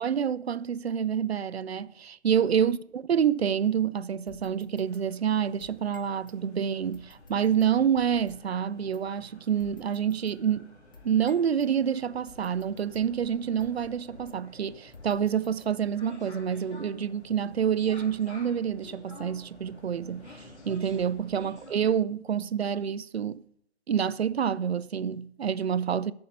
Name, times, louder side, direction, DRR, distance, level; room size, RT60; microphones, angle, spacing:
voice 1, 0.0-10.7 11.0-23.4 23.9-26.1, right 8 dB, 65° right, 0.5 m, -27 dB
sound 1, 4.3-6.4 6.9-8.5 8.9-9.0 9.6-11.7 12.3-14.5 14.9-16.0, left 3 dB, 20° left, 0.5 m, -54 dB
sound 2, 4.7-21.8, left 2 dB, 70° left, 3.0 m, -52 dB
9.2 x 6.9 x 6.4 m
figure-of-eight pair, 135°, 35 cm